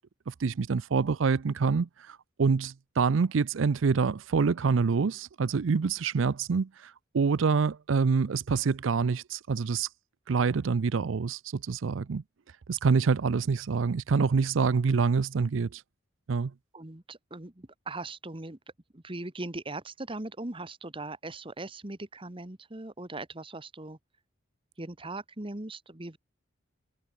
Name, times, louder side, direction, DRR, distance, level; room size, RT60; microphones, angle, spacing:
voice 1, 0.3-9.9 10.3-12.2 12.7-15.8 16.3-16.5, right 5 dB, 80° right, 0.5 m, -26 dB
voice 2, 16.7-18.6 18.9-24.0 24.8-26.2, right 2 dB, 25° right, 1.5 m, -39 dB
head